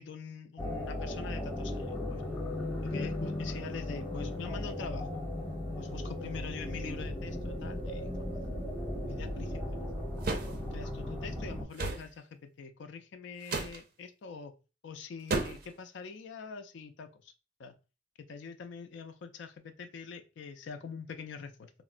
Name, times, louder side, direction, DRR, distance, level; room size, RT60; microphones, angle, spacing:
voice 1, 0.0-2.4 2.8-5.2 5.8-8.4 9.1-9.8 10.7-14.5 14.8-17.3 17.6-17.7 18.2-21.7, left 5 dB, 65° left, 7 dB, 0.4 m, -44 dB
sound 1, 0.6-11.6, left 1 dB, 10° left, 0.7 m, -36 dB
sound 2, 10.2-10.5 11.8-12.1 13.4-13.8 15.3-15.7, right 3 dB, 50° right, 0.5 m, -32 dB
3.6 x 2.0 x 2.4 m, 0.31 s
head